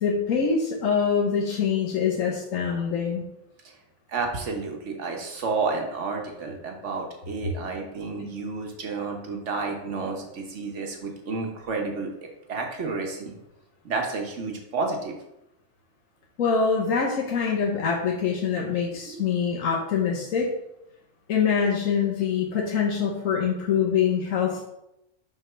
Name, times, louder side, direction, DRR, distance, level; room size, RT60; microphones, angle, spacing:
voice 1, 0.0-3.2 8.2-8.3 16.4-20.5 21.3-24.6, left 6 dB, 90° left, -2 dB, 1.4 m, -24 dB
voice 2, 4.1-12.1 12.5-13.4 13.8-15.2 19.1-19.2, right 4 dB, 65° right, 2 dB, 1.4 m, -30 dB
6.1 x 3.5 x 5.6 m, 0.85 s
omnidirectional pair, 1.3 m